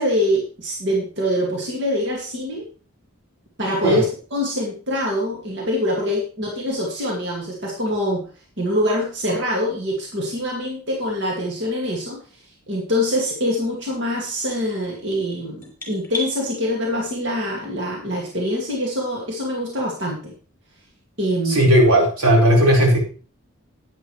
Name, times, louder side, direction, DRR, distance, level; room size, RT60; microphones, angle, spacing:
voice 1, 0.0-2.6 3.6-8.2 8.6-12.2 12.7-20.3 21.2-21.8, equal, 50° right, -2 dB, 2.2 m, -24 dB
sound 1, 14.5-16.3, left 1 dB, 10° left, 3.3 m, -34 dB
voice 2, 21.5-23.0, equal, 90° right, -2 dB, 4.6 m, -15 dB
11.0 x 9.6 x 3.2 m, 0.37 s
head